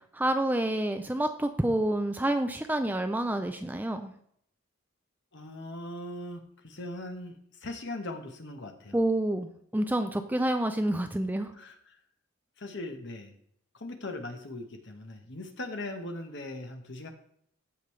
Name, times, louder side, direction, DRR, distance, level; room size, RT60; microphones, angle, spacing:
voice 1, 0.1-4.1 8.9-11.5, right 1 dB, 10° right, 7 dB, 0.4 m, -28 dB
voice 2, 5.3-9.0 11.5-12.0 12.6-13.3 13.7-17.1, left 1 dB, 55° left, 5 dB, 1.2 m, -40 dB
14.5 x 5.3 x 3.2 m, 0.67 s
head